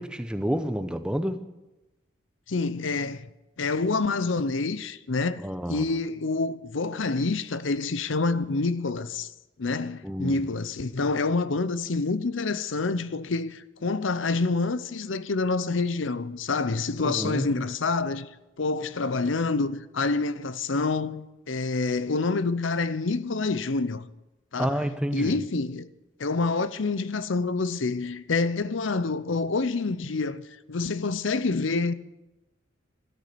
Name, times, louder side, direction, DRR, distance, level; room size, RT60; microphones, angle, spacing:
voice 1, 0.0-1.4 5.4-5.8 10.0-10.4 17.0-17.5 24.6-25.4, equal, 5° right, 0.8 m, -29 dB
voice 2, 2.5-3.3 3.6-5.4 5.7-9.3 9.6-18.3 18.6-24.1 24.5-24.8 25.1-25.9 26.2-31.9, left 3 dB, 75° left, 0.7 m, -27 dB
13.5 x 12.5 x 6.9 m
head